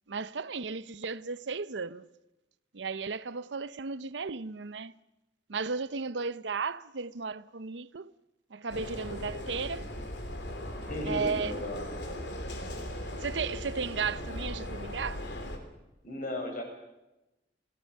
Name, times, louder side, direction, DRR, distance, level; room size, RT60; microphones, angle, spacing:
voice 1, 0.1-2.1 2.7-4.9 5.5-8.1 8.5-9.9 11.1-11.5 13.2-15.4, right 5 dB, 75° right, 0.7 m, -35 dB
sound 1, 8.7-15.6, left 1 dB, 70° left, 3.5 m, -38 dB
voice 2, 10.8-12.2 16.0-16.6, left 1 dB, 50° left, 6.4 m, -36 dB
28.5 x 17.5 x 6.6 m
head